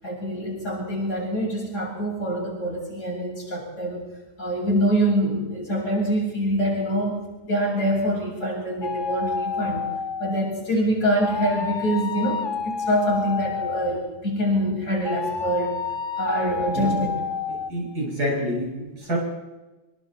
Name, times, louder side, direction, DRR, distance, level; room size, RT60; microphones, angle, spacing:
voice 1, 0.0-4.1 4.4-9.8 10.2-15.8 16.2-17.1, equal, 30° left, -4 dB, 8.2 m, -25 dB
sound 1, 8.8-10.6 11.2-14.1 15.0-17.7, left 5 dB, 55° left, 0.5 m, -29 dB
voice 2, 17.7-19.2, equal, 45° right, -2 dB, 6.7 m, -27 dB
25.0 x 24.0 x 4.4 m, 1.1 s
omnidirectional pair, 2.3 m